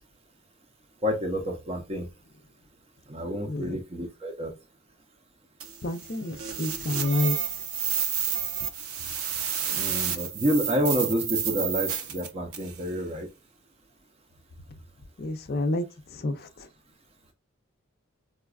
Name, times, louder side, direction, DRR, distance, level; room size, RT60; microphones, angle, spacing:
voice 1, 1.0-2.1 3.1-4.5 9.7-13.3, equal, 30° right, 0.6 m, -29 dB
voice 2, 3.5-3.8 5.8-7.4 15.2-15.8 16.1-16.5, left 2 dB, 45° left, 0.5 m, -28 dB
sound 1, 5.6-12.8, right 8 dB, 85° right, 0.7 m, -30 dB
4.8 x 2.3 x 2.3 m
head